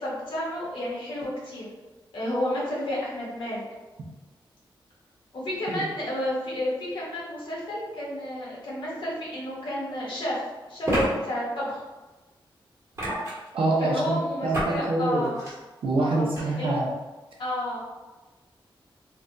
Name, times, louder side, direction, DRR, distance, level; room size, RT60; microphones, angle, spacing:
voice 1, 0.0-1.6 2.1-3.6 5.3-10.4 10.7-11.8 13.8-15.3 16.0-16.8 17.4-17.8, left 1 dB, 70° left, -7 dB, 1.3 m, -31 dB
sound 1, 9.3-9.4 10.8-11.1 12.9-13.5 14.5-14.8 15.2-15.5 16.3-16.4, equal, 35° right, 1.2 m, -27 dB
voice 2, 13.5-14.2 14.4-15.3 15.8-16.9, right 2 dB, 80° right, -2 dB, 0.7 m, -25 dB
3.3 x 2.3 x 2.6 m, 1.2 s
wide cardioid pair, 145°, 9 cm